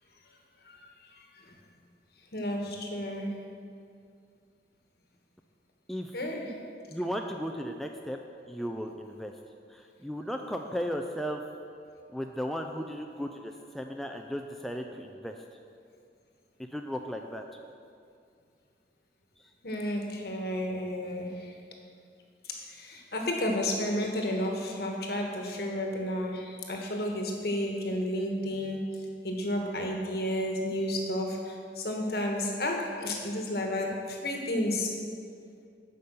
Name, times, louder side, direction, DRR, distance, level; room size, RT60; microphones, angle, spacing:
voice 1, 0.6-1.5 2.3-3.3 6.1-6.6 19.6-21.6 22.4-28.9 29.2-35.0, left 1 dB, 60° left, 1 dB, 1.3 m, -32 dB
voice 2, 6.9-8.2 8.5-9.3 9.7-11.4 12.1-15.4 16.7-17.4 19.4-19.5, equal, ahead, 3 dB, 0.3 m, -35 dB
8.5 x 5.4 x 6.6 m, 2.3 s
head